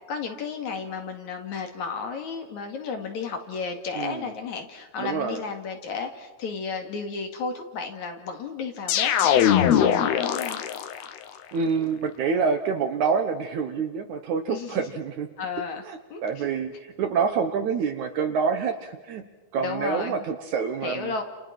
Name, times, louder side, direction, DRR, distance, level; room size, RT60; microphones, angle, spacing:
voice 1, 0.1-10.6 14.5-14.8 15.4-15.8 16.1-16.4 19.6-20.2 20.8-21.2, left 5 dB, 50° left, 4 dB, 3.2 m, -33 dB
voice 2, 4.0-4.3 5.0-5.4 11.5-15.3 15.9-16.7 17.0-19.2 19.5-21.1, right 6 dB, 65° right, 7 dB, 2.0 m, -27 dB
sound 1, 8.9-11.1, left 9 dB, 80° left, 3.2 m, -21 dB
30.0 x 29.0 x 5.9 m, 1.2 s
omnidirectional pair, 4.6 m